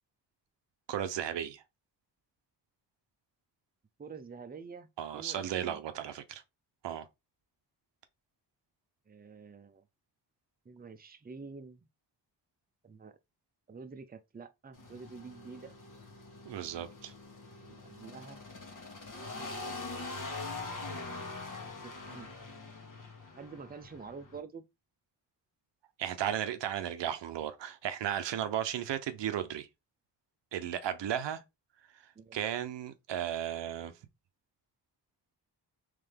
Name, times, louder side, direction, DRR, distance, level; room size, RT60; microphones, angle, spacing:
voice 1, 0.9-1.6 5.0-6.4 6.8-7.0 16.4-17.1 26.0-29.7 30.5-31.4 32.3-33.9, right 10 dB, 85° right, 0.7 m, -35 dB
voice 2, 4.0-5.8 9.1-9.8 10.6-11.9 12.8-13.2 13.7-15.7 17.6-18.4 19.6-20.5 21.8-22.3 23.4-24.6 32.2-32.4, right 5 dB, 20° right, 0.6 m, -48 dB
sound 1, 14.7-24.4, left 3 dB, 45° left, 1.4 m, -44 dB
3.7 x 3.3 x 3.4 m
cardioid pair, 60°, 42 cm